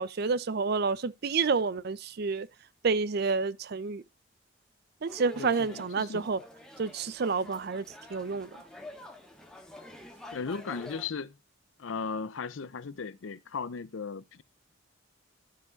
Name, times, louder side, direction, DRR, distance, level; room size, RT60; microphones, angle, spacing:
voice 1, 0.0-2.5 2.8-4.0 5.0-6.4 6.8-8.5, right 4 dB, 55° right, 0.5 m, -29 dB
sound 1, 5.1-11.1, left 2 dB, 5° left, 1.4 m, -48 dB
voice 2, 5.4-6.3 10.3-11.4 11.8-14.4, left 5 dB, 80° left, 0.6 m, -37 dB
13.0 x 4.8 x 3.9 m
head